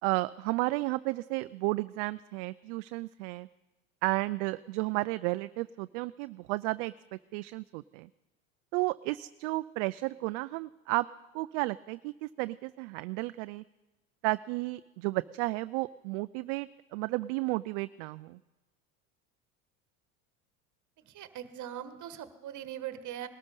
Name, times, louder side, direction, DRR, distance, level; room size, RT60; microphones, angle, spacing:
voice 1, 0.0-3.5 4.0-6.9 7.3-8.1 8.7-11.1 11.3-13.6 14.2-18.4, right 21 dB, 60° right, 14 dB, 0.5 m, -33 dB
voice 2, 21.0-23.3, right 11 dB, 45° right, 11 dB, 1.6 m, -41 dB
20.0 x 13.0 x 5.4 m, 1.1 s
hypercardioid pair, 85°, 42 cm